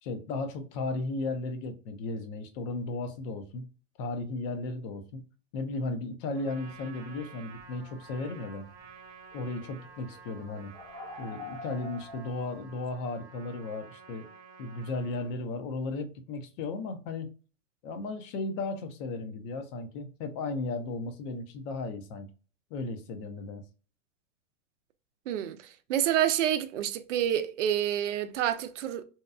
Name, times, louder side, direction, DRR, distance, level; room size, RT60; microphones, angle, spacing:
voice 1, 0.0-3.7 4.0-5.2 5.5-8.7 9.3-10.7 11.2-14.3 14.6-17.3 17.8-22.3 22.7-23.6, left 3 dB, 45° left, 0.7 m, -35 dB
Trumpet, 6.3-15.3, right 6 dB, 45° right, 1.0 m, -51 dB
sound 1, 7.1-7.2 7.6-7.8 8.7-8.9 9.3-12.6, left 2 dB, 10° left, 0.3 m, -45 dB
voice 2, 25.3-25.6 25.9-29.0, right 10 dB, 75° right, 0.5 m, -28 dB
2.8 x 2.3 x 2.2 m
hypercardioid pair, 110°, 37 cm